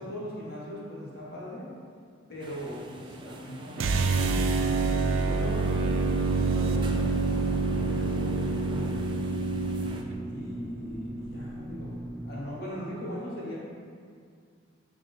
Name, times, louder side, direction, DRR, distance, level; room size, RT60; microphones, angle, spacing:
voice 1, 0.0-1.7 2.3-9.1 10.2-12.0 12.2-13.6, equal, 50° left, -7 dB, 1.6 m, -39 dB
sound 1, 2.4-10.0, right 2 dB, 25° right, 0.4 m, -45 dB
sound 2, 3.8-10.0, right 3 dB, 85° right, 0.5 m, -27 dB
sound 3, 5.9-12.3, right 1 dB, 50° right, 1.3 m, -39 dB
8.7 x 3.7 x 3.4 m, 2.2 s
head